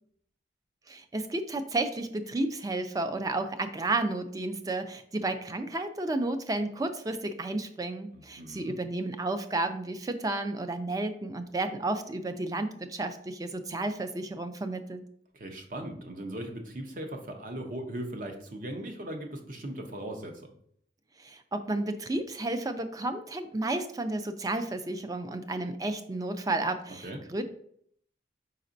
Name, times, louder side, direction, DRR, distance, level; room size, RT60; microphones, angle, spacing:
voice 1, 0.9-15.0 21.2-27.4, right 2 dB, 20° right, 9 dB, 0.4 m, -32 dB
voice 2, 8.1-8.8 15.3-20.6 27.0-27.2, right 1 dB, 50° right, 4 dB, 0.8 m, -38 dB
5.0 x 4.2 x 2.6 m, 0.65 s
head